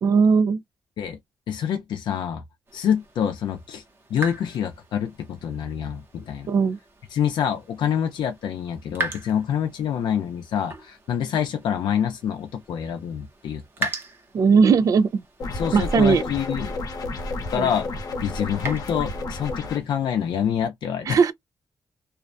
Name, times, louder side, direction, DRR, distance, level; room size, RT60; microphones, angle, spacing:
voice 1, 0.0-0.6 6.5-6.8 14.3-15.2 15.7-16.2 17.6-17.7 21.1-21.3, right 5 dB, 50° right, 0.3 m, -18 dB
voice 2, 1.5-2.4 2.7-3.8 4.1-6.5 7.1-13.9 15.5-16.8 17.5-17.9 18.2-21.2, left 8 dB, 85° left, 0.5 m, -26 dB
Faucet Drip, 2.7-20.5, right 2 dB, 30° right, 0.8 m, -40 dB
sound 1, 15.4-19.8, left 2 dB, 55° left, 0.8 m, -31 dB
2.4 x 2.1 x 2.4 m
wide cardioid pair, 155°, 8 cm